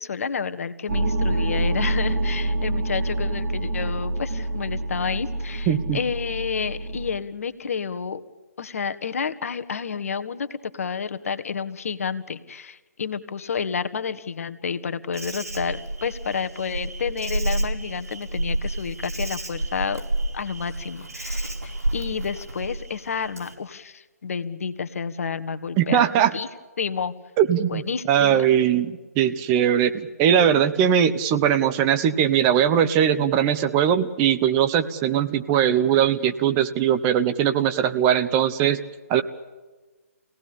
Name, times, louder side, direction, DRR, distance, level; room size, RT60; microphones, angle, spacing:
voice 1, 0.0-8.2 8.6-20.0 20.3-26.5 26.8-27.1 27.7-28.6, left 6 dB, 65° left, 10 dB, 1.6 m, -30 dB
sound 1, 0.9-7.2, right 1 dB, 60° right, 2.7 m, -26 dB
voice 2, 5.7-6.0 25.8-26.3 27.4-27.8 28.1-38.8 39.1-39.2, right 9 dB, 25° right, 10 dB, 1.1 m, -20 dB
Insect, 15.1-23.5, right 1 dB, 80° right, 5.0 m, -30 dB
25.5 x 18.0 x 8.7 m, 1.3 s
figure-of-eight pair, 140°, 8 cm